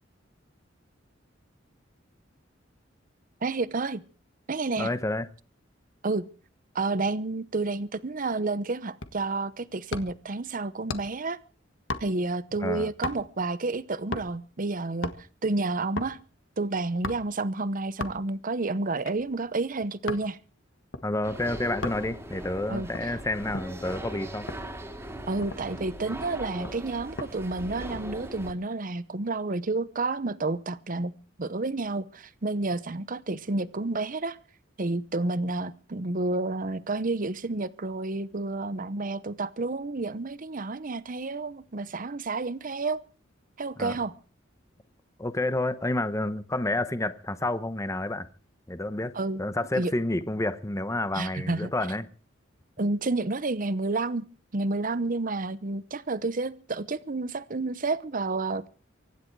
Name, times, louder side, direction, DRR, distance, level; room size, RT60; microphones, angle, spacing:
voice 1, 3.4-4.0 4.5-4.9 6.0-6.3 6.7-11.4 12.0-15.1 15.4-16.2 16.6-20.4 22.7-23.2 25.3-31.1 31.4-34.4 34.8-43.0 43.6-44.1 49.1-49.4 49.7-49.9 51.1-51.7 52.8-54.3 54.5-58.7, right 3 dB, 45° right, 0.8 m, -30 dB
voice 2, 4.8-5.3 12.6-12.9 21.0-24.5 43.8-43.9 45.2-48.3 48.7-49.1 49.4-52.1, left 1 dB, 15° left, 0.9 m, -29 dB
sound 1, 9.0-9.3 9.9-10.3 10.9-11.3 11.9-12.4 13.0-13.4 14.1-14.5 14.9-15.3 16.0-16.2 17.0-17.4 18.0-18.4 19.0-20.3 20.9-21.1 21.8-22.1 22.7-23.8 24.5-24.7 25.1-25.2 25.4-25.8 26.6-27.3 27.7-28.0, left 3 dB, 80° left, 1.5 m, -36 dB
sound 2, 21.2-28.5, right 1 dB, 15° right, 2.3 m, -40 dB
24.5 x 10.5 x 4.7 m
head